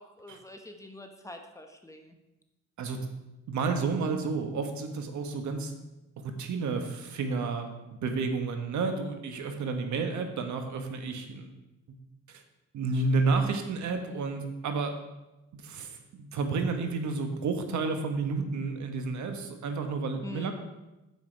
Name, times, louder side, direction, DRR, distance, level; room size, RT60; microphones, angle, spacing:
voice 1, 0.0-2.1 20.2-20.5, left 2 dB, 10° left, 4 dB, 1.2 m, -44 dB
voice 2, 3.5-5.7 6.2-11.5 11.9-12.0 12.3-12.4 12.7-14.9 15.5-20.5, right 4 dB, 70° right, 6 dB, 1.4 m, -31 dB
9.8 x 7.3 x 4.6 m, 1.0 s
cardioid pair, 90°, 30 cm